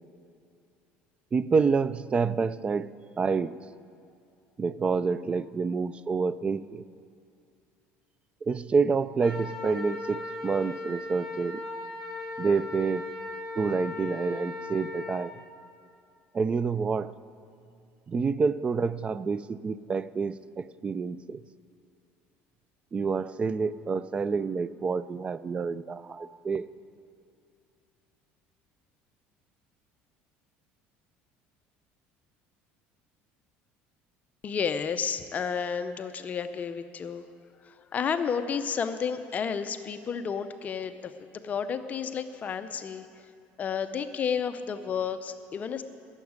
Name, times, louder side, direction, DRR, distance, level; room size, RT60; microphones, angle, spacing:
voice 1, 1.3-2.9 3.2-3.6 4.6-6.8 8.4-11.6 12.4-13.1 13.6-15.4 16.3-17.1 18.1-21.4 22.9-26.7, right 5 dB, 25° right, 17 dB, 0.3 m, -28 dB
Wind instrument woodwind instrument, 9.2-15.3, left 3 dB, 5° left, 3.1 m, -37 dB
voice 2, 34.4-37.3 37.6-43.1 43.6-45.8, left 6 dB, 35° left, 10 dB, 0.6 m, -31 dB
12.0 x 7.2 x 9.5 m, 2.6 s
cardioid pair, 125°, 5 cm